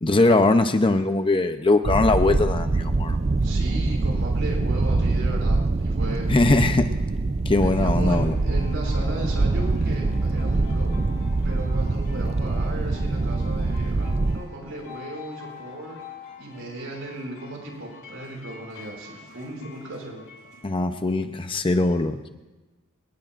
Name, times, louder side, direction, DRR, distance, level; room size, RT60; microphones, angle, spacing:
voice 1, 0.0-3.2 6.3-6.9 7.5-8.3 20.6-22.3, left 2 dB, 25° left, 8 dB, 0.7 m, -21 dB
sound 1, 1.8-14.4, right 3 dB, 30° right, 0.5 m, -24 dB
voice 2, 3.4-6.3 7.6-10.9 11.4-16.0 16.4-20.2, right 1 dB, 65° right, -1 dB, 6.3 m, -36 dB
sound 2, 8.0-20.7, left 5 dB, 80° left, 5.8 m, -46 dB
25.5 x 19.0 x 2.6 m, 1.2 s
head